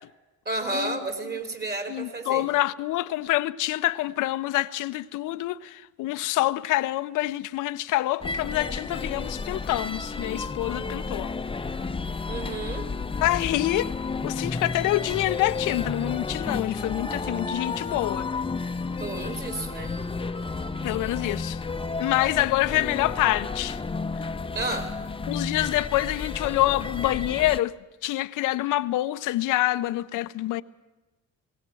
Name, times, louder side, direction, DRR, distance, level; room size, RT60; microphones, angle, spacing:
voice 1, 0.5-2.5 12.3-12.9 19.0-20.0 24.5-24.9, right 2 dB, 35° right, 3.5 m, -31 dB
voice 2, 1.9-11.3 13.2-13.9 14.2-18.3 20.8-21.6 22.0-23.8 24.2-24.3 25.3-27.8 28.0-30.6, left 16 dB, 90° left, 0.6 m, -26 dB
sound 1, 8.2-27.6, left 4 dB, 20° left, 0.6 m, -32 dB
19.5 x 18.5 x 7.6 m
cardioid pair, 90°, 30 cm